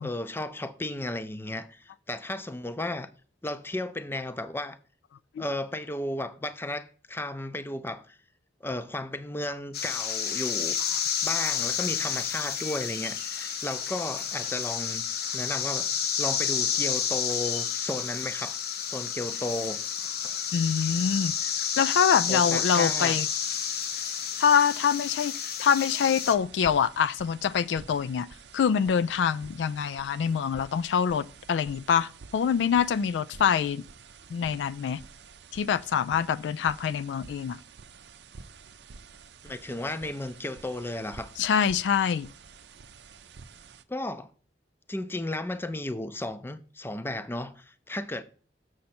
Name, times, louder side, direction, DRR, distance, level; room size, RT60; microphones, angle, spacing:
voice 1, 0.0-3.1 3.4-4.8 5.4-8.2 8.6-10.7 11.2-15.0 15.3-18.6 18.9-19.8 22.3-23.2 39.4-41.3 43.9-44.3 44.9-48.2, left 1 dB, 15° left, 0.5 m, -34 dB
sound 1, 9.7-26.3, left 8 dB, 60° left, 0.7 m, -30 dB
voice 2, 20.5-21.5 21.8-23.3 24.4-25.3 25.6-28.3 28.5-33.8 34.3-35.0 35.5-37.6 41.4-42.3, left 7 dB, 80° left, 0.3 m, -25 dB
sound 2, 26.2-43.8, right 5 dB, 70° right, 0.5 m, -50 dB
7.0 x 6.4 x 4.3 m
head